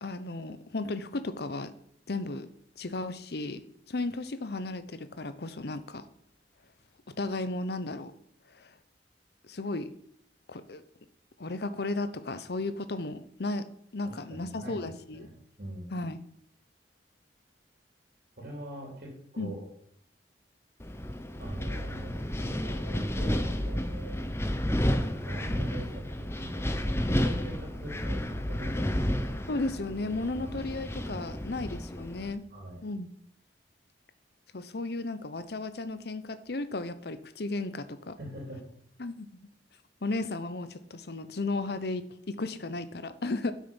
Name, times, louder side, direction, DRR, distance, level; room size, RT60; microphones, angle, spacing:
voice 1, 0.0-1.7 2.1-2.5 2.8-3.6 3.9-6.0 7.2-8.1 8.6-8.7 9.5-9.9 10.5-10.8 11.4-13.7 13.9-15.3 15.9-16.2 19.4-19.6 29.5-32.4 32.8-33.1 34.5-38.2 39.0-39.3 40.0-43.5, left 2 dB, 65° left, 12 dB, 0.8 m, -34 dB
voice 2, 14.0-15.3 15.6-15.9 18.4-19.6 21.4-24.2 25.2-29.4 30.4-30.6 32.5-32.8 38.2-38.6, right 1 dB, 55° right, -3 dB, 3.3 m, -42 dB
Wind, 20.8-32.3, left 1 dB, 15° left, 0.8 m, -31 dB
12.0 x 6.3 x 5.4 m, 0.70 s
head